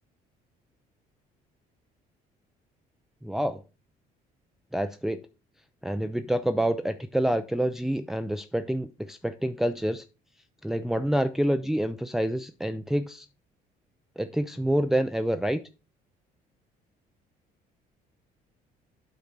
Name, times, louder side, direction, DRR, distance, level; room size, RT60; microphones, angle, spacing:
voice 1, 3.2-3.6 4.7-5.2 5.8-10.0 10.6-13.3 14.2-15.6, right 1 dB, ahead, 8 dB, 0.5 m, -27 dB
8.6 x 3.9 x 6.0 m, 0.30 s
cardioid pair, 110°, 17 cm